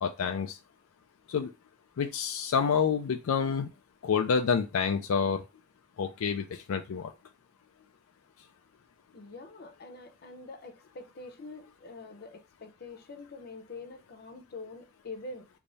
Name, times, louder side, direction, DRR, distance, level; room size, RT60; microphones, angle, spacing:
voice 1, 0.0-0.6 1.3-1.5 2.0-3.7 4.0-5.4 6.0-7.1, left 6 dB, 85° left, 0.4 m, -28 dB
voice 2, 9.1-15.5, left 3 dB, 50° left, 0.7 m, -45 dB
3.4 x 2.1 x 3.9 m
head